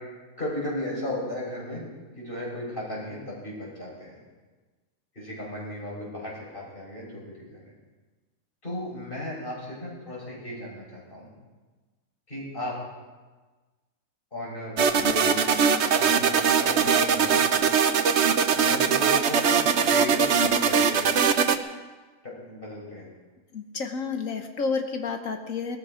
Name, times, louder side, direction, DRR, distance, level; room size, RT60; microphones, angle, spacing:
voice 1, 0.4-1.8 2.2-4.2 5.1-7.6 8.6-11.3 12.3-12.8 14.3-15.4 15.9-17.4 18.6-21.3 22.2-23.1, left 1 dB, 35° left, -4 dB, 5.7 m, -35 dB
sound 1, 14.8-21.6, right 6 dB, 55° right, 1.0 m, -21 dB
voice 2, 23.5-25.8, left 4 dB, 70° left, 5 dB, 1.4 m, -30 dB
18.0 x 13.5 x 5.0 m, 1.3 s
omnidirectional pair, 1.5 m